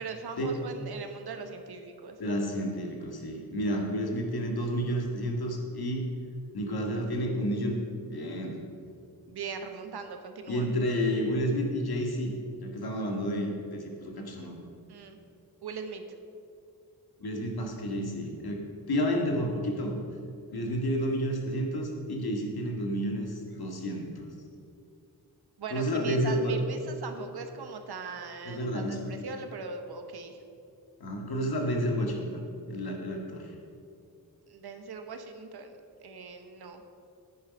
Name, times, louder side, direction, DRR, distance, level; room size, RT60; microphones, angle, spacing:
voice 1, 0.0-2.2 9.3-10.7 14.9-15.2 15.6-16.0 25.6-30.4 34.5-35.7 36.0-36.8, right 5 dB, 75° right, 6 dB, 1.1 m, -40 dB
voice 2, 2.2-6.1 6.5-7.8 8.0-8.6 10.5-12.3 12.6-14.6 17.2-20.0 20.5-24.3 25.7-26.5 28.5-29.1 31.0-32.4 32.7-33.5, equal, 70° left, 1 dB, 2.0 m, -30 dB
9.5 x 9.4 x 5.4 m, 2.5 s
cardioid pair, 65°, 39 cm